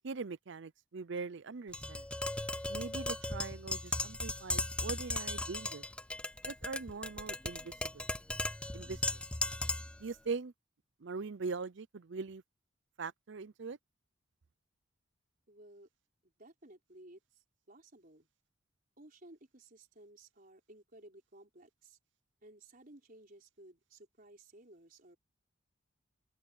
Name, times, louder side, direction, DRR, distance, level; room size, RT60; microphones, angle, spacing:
voice 1, 0.0-2.0 2.7-5.8 6.4-8.1 8.7-9.2 10.0-10.5 11.0-12.4 13.0-13.8, right 4 dB, 60° right, 0.6 m, -41 dB
Tap, 1.7-10.0, left 2 dB, 5° left, 0.4 m, -37 dB
voice 2, 15.5-15.9 16.2-18.3 19.0-22.0 22.4-25.2, right 1 dB, 45° right, 4.7 m, -57 dB
open air
head